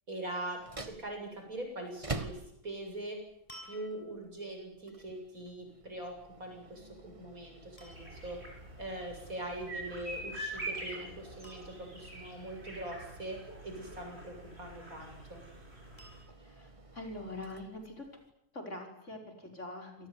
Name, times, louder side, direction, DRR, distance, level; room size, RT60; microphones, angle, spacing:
voice 1, 0.1-3.2 3.6-8.4 8.8-13.4 13.6-15.4, right 1 dB, 60° right, 3 dB, 8.3 m, -42 dB
sound 1, 0.5-18.3, right 2 dB, 20° right, 1.7 m, -49 dB
sound 2, 2.5-2.8 3.5-4.4 6.8-7.1 7.8-8.3 10.3-10.6 10.9-11.0 11.4-12.1 14.4-15.0 16.0-16.6 17.4-17.5, equal, 20° left, 7.7 m, -55 dB
sound 3, 7.8-16.2, right 1 dB, 40° right, 8.0 m, -45 dB
voice 2, 16.4-18.1 18.5-20.1, left 2 dB, 50° left, 3 dB, 5.7 m, -44 dB
28.0 x 19.0 x 9.9 m, 0.77 s
omnidirectional pair, 1.6 m